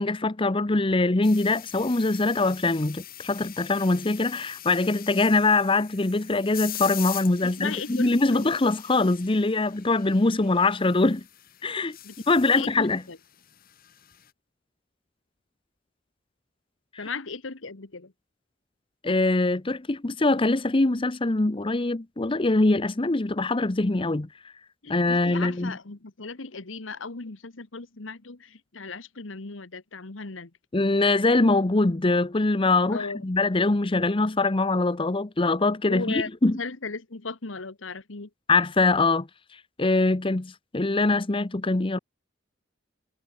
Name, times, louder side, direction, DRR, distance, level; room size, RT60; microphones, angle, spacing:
voice 1, 0.0-11.2 11.6-12.0 12.3-13.0 17.0-17.1 19.0-24.3 24.9-25.7 30.7-36.6 38.5-42.0, left 2 dB, 25° left, 0.8 m, -23 dB
sound 1, 1.2-14.3, left 13 dB, 50° left, 1.8 m, -42 dB
voice 2, 7.4-8.5 12.0-13.2 17.0-18.1 24.8-30.5 32.9-33.2 35.9-36.3 36.6-38.3, left 4 dB, 80° left, 1.4 m, -36 dB
head